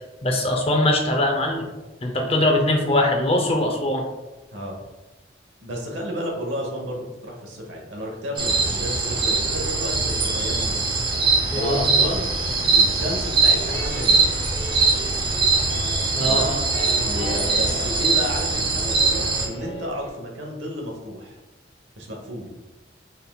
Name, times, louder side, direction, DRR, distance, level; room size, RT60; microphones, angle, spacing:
voice 1, 0.2-1.6 2.0-4.1 11.5-11.8 16.1-16.6, left 1 dB, 30° left, 2 dB, 0.6 m, -21 dB
voice 2, 5.6-10.8 11.4-12.3 12.6-14.4 16.2-16.6 16.9-21.4 22.0-22.5, equal, 80° right, 0 dB, 1.0 m, -32 dB
sound 1, 8.4-19.5, right 3 dB, 25° right, 0.6 m, -22 dB
sound 2, 13.5-20.1, equal, 60° left, 0.9 m, -36 dB
4.1 x 3.5 x 2.3 m, 1.1 s
head